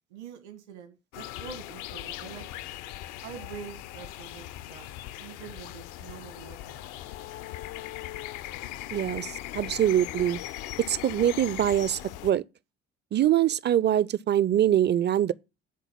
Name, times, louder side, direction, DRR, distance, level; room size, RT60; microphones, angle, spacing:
voice 1, 0.1-2.6 3.2-4.9 5.2-7.0, right 7 dB, 70° right, 1.6 m, -45 dB
sound 1, 1.1-12.3, left 14 dB, 60° left, 0.7 m, -39 dB
voice 2, 8.9-10.4 10.8-12.4 13.1-15.3, right 11 dB, 30° right, 0.6 m, -24 dB
11.0 x 4.0 x 7.4 m
figure-of-eight pair, 50°, 35 cm